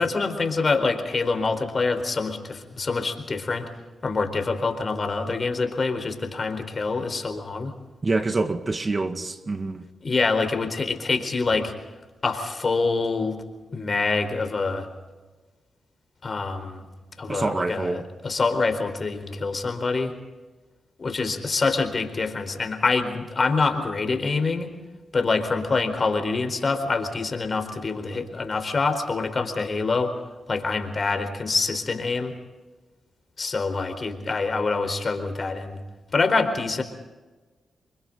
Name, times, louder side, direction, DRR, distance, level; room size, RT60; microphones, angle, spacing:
voice 1, 0.0-3.7 4.0-7.7 10.0-11.7 12.2-13.4 13.7-14.9 16.2-16.8 17.2-20.1 21.0-24.7 25.1-30.1 30.5-32.3 33.4-35.8 36.1-36.8, left 4 dB, 50° left, 4.3 m, -25 dB
voice 2, 8.0-9.8 17.3-18.0, right 3 dB, 40° right, 2.0 m, -26 dB
29.5 x 24.0 x 4.0 m
supercardioid pair, 45°, 0 cm